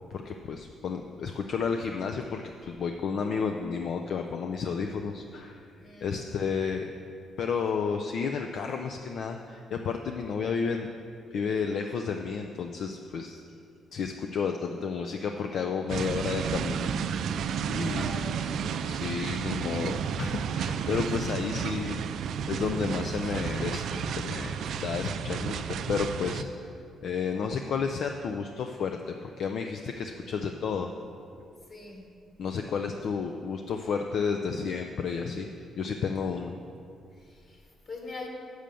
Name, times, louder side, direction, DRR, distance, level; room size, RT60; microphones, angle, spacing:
voice 1, 0.1-5.7 6.0-6.9 7.4-10.9 11.3-13.4 13.9-17.2 17.7-18.1 18.4-18.5 18.9-26.6 27.0-30.9 32.4-35.5 35.8-36.5, left 5 dB, 65° left, 4 dB, 0.4 m, -32 dB
voice 2, 5.8-6.2 17.7-18.6 31.7-32.1 37.1-38.3, left 2 dB, 45° left, 0 dB, 1.9 m, -43 dB
sound 1, 15.9-26.4, right 7 dB, 70° right, 0.3 m, -32 dB
7.6 x 6.4 x 6.9 m, 2.5 s
cardioid pair, 90°, 0 cm